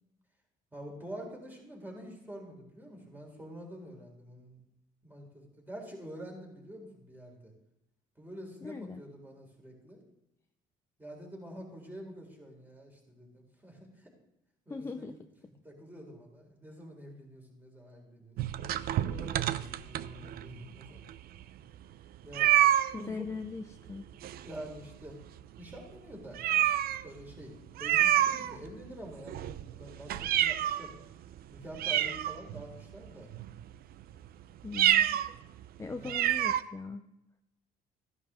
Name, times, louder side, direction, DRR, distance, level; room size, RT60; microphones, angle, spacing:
voice 1, 0.7-4.6 5.0-7.5 8.2-10.0 11.0-14.1 14.7-15.2 15.6-18.4 18.9-21.0 22.2-22.5 22.9-23.2 24.4-25.2 25.6-26.7 27.0-30.9 31.5-33.3 35.8-36.1, right 1 dB, 10° right, 0 dB, 3.9 m, -47 dB
voice 2, 8.6-9.0 14.7-15.2 22.9-24.1 34.6-35.2 35.8-37.0, left 3 dB, 15° left, 6 dB, 0.6 m, -40 dB
sound 1, 18.4-20.5 21.1-21.2 21.4-21.5 22.3-23.0 24.2-24.8 25.1-25.2 25.7-25.8 26.3-27.1 27.8-28.9 29.3-30.9 31.4-31.5 31.7-32.8 33.3-33.6 34.6-35.3 35.6-35.7 36.1-36.6, right 12 dB, 65° right, 0.6 m, -27 dB
14.0 x 11.0 x 3.7 m, 0.87 s
cardioid pair, 110°, 17 cm